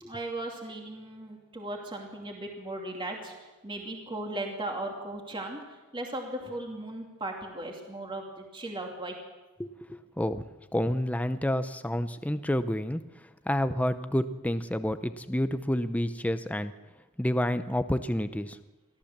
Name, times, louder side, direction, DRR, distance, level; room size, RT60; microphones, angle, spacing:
voice 1, 0.0-5.6 5.9-9.2, right 1 dB, 25° right, 1 dB, 2.7 m, -37 dB
voice 2, 9.6-10.4 10.7-13.0 13.5-16.7 17.2-18.6, left 1 dB, 5° left, 10 dB, 0.6 m, -29 dB
24.0 x 15.0 x 7.3 m, 1.2 s
head